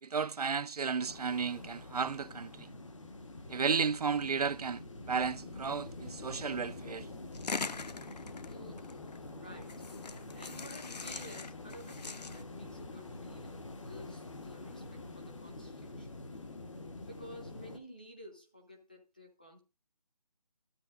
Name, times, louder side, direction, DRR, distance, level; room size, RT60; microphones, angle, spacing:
voice 1, 0.0-2.7 3.5-4.8 5.1-7.1, right 5 dB, 65° right, 0.5 m, -33 dB
sound 1, 1.0-17.8, left 2 dB, 50° left, 1.2 m, -46 dB
sound 2, 7.3-9.2 9.6-12.4, left 4 dB, 80° left, 0.7 m, -42 dB
voice 2, 8.5-16.1 17.0-19.6, equal, 15° left, 0.6 m, -52 dB
12.0 x 8.6 x 2.5 m
figure-of-eight pair, 175°, 21 cm